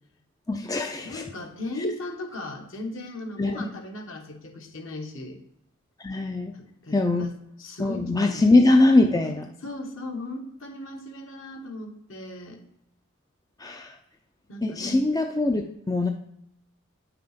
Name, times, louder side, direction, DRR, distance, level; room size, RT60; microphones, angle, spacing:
voice 1, 0.5-1.3 1.8-1.9 3.4-3.6 6.0-6.5 6.9-7.3 7.8-9.5 13.6-14.0 14.6-16.1, left 2 dB, 15° left, 4 dB, 0.5 m, -22 dB
voice 2, 1.0-5.4 6.5-7.3 7.6-8.5 9.6-12.6 14.5-15.2, left 2 dB, 60° left, 3 dB, 1.6 m, -37 dB
9.3 x 5.8 x 5.1 m, 0.76 s
head